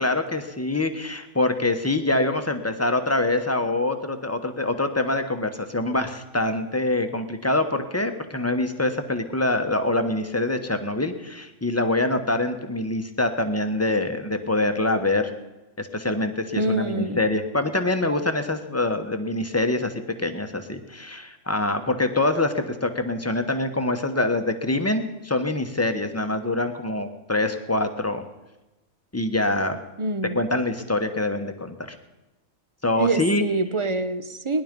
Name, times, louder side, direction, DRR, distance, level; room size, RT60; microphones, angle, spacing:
voice 1, 0.0-15.3 15.8-19.9 20.2-28.3 29.1-29.8 30.3-31.5 31.9-32.0 32.8-33.4, left 2 dB, 10° left, 7 dB, 1.0 m, -25 dB
voice 2, 16.6-17.2 30.0-30.4 33.0-34.6, right 2 dB, 30° right, 11 dB, 0.6 m, -25 dB
20.0 x 11.0 x 5.3 m, 1.1 s
omnidirectional pair, 1.4 m